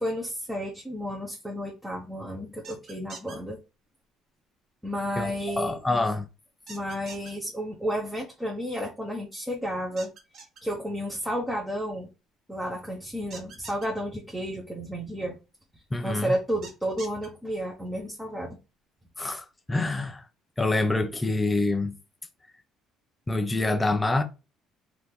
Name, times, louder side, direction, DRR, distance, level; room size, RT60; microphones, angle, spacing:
voice 1, 0.0-3.6 4.8-5.8 6.7-10.1 10.6-12.1 12.5-15.4 15.7-18.6, equal, 5° right, 1.1 m, -32 dB
sound 1, 2.6-3.4 6.7-7.3 10.0-10.6 13.3-13.9 16.6-17.3, right 4 dB, 55° right, 1.6 m, -43 dB
voice 2, 5.2-6.2 15.9-16.3 19.2-20.2 20.6-22.0 23.3-24.2, left 2 dB, 15° left, 0.6 m, -26 dB
4.1 x 2.8 x 3.3 m
supercardioid pair, 85°, 0 cm